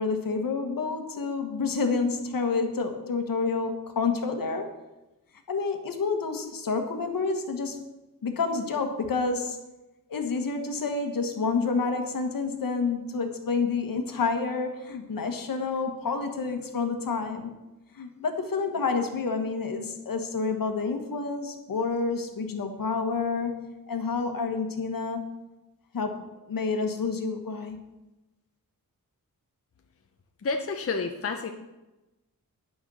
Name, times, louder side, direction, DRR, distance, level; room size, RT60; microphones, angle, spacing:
voice 1, 0.0-4.7 5.5-7.8 8.2-9.6 10.1-17.5 17.9-25.2 25.9-27.8, left 4 dB, 70° left, 6 dB, 1.4 m, -29 dB
voice 2, 30.4-31.5, left 4 dB, 40° left, 4 dB, 0.7 m, -29 dB
10.0 x 6.5 x 6.2 m, 1.0 s
wide cardioid pair, 165°, 35 cm